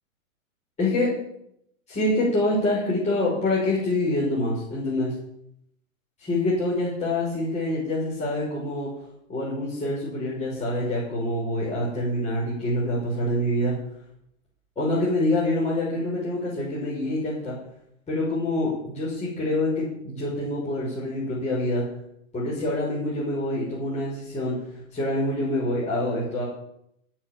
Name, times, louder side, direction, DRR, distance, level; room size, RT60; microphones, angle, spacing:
voice 1, 0.8-1.1 1.9-5.1 6.2-8.9 9.3-13.7 14.8-17.5 18.1-21.8 22.3-26.5, left 1 dB, 15° left, -7 dB, 5.8 m, -26 dB
17.0 x 6.4 x 7.5 m, 0.75 s
hypercardioid pair, 140°, 40 cm